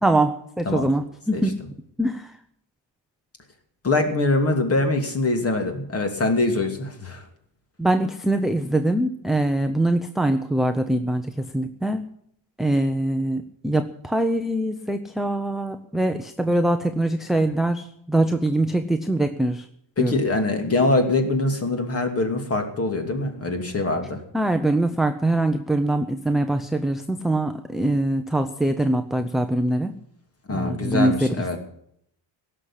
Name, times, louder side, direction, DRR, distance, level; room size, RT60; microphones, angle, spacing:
voice 1, 0.0-1.5 2.0-2.3 7.8-12.0 12.6-19.7 20.0-20.2 24.3-29.9 30.5-31.6, right 1 dB, ahead, 6 dB, 0.6 m, -23 dB
voice 2, 3.8-7.3 20.0-24.2 30.5-31.6, left 2 dB, 30° left, 6 dB, 2.7 m, -23 dB
17.0 x 6.7 x 9.9 m, 0.69 s
cardioid pair, 145°, 45 cm